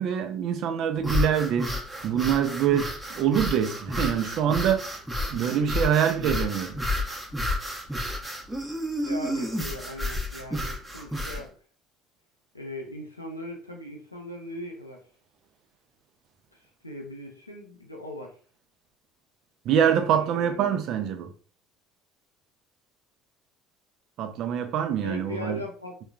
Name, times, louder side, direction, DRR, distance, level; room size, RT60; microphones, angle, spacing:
voice 1, 0.0-1.8 2.0-4.9 5.3-6.8 19.7-21.3 24.2-25.6, right 9 dB, 50° right, 0.4 m, -25 dB
sound 1, 1.0-11.5, left 1 dB, 5° right, 0.7 m, -31 dB
voice 2, 9.1-11.6 12.5-15.0 16.5-18.4 20.0-20.8 25.0-26.1, left 1 dB, 90° left, 0.4 m, -39 dB
3.7 x 2.2 x 2.3 m
figure-of-eight pair, 60°, 0 cm